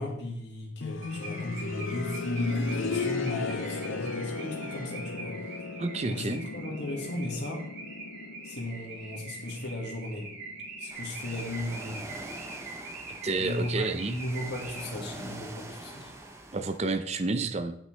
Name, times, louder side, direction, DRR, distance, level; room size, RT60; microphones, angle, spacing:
voice 1, 0.0-5.6 6.1-7.7 8.4-10.3 10.8-12.1 13.4-16.1, left 1 dB, 60° left, 0 dB, 1.9 m, -35 dB
sound 1, 0.8-11.6 12.9-13.0, left 4 dB, 80° left, 0.6 m, -37 dB
Car / Alarm, 1.0-15.2, right 3 dB, 70° right, 2.9 m, -44 dB
voice 2, 5.8-6.5 13.2-14.2 16.5-17.8, right 3 dB, 35° right, 10 dB, 0.5 m, -30 dB
Ocean, 10.9-16.8, right 1 dB, 15° right, 0.8 m, -44 dB
8.5 x 8.1 x 3.3 m, 0.74 s
head